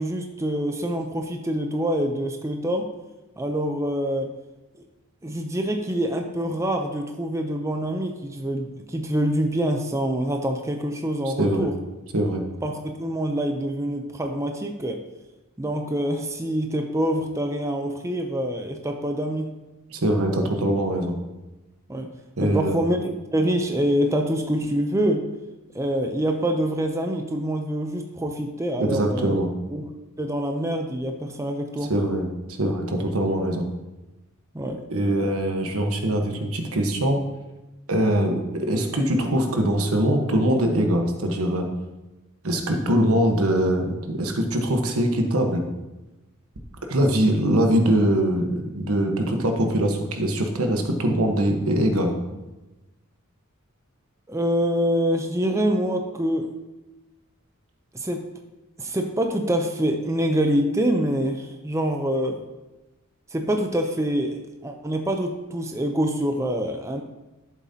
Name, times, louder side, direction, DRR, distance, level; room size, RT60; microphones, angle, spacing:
voice 1, 0.0-2.9 3.4-4.3 5.2-11.8 12.6-15.0 15.6-19.5 21.9-22.1 22.4-25.3 25.7-29.4 29.7-29.8 30.2-31.9 34.5-34.8 54.3-56.5 57.9-58.3 58.8-62.4 63.3-67.0, equal, 15° right, 4 dB, 0.5 m, -25 dB
voice 2, 11.2-11.7 12.1-12.4 19.9-21.1 22.4-22.8 28.8-29.5 31.8-32.3 32.6-33.6 34.9-37.2 37.9-41.7 42.4-45.6 46.9-52.1, right 1 dB, 75° right, 4 dB, 1.2 m, -22 dB
12.0 x 7.3 x 2.8 m, 1.1 s
head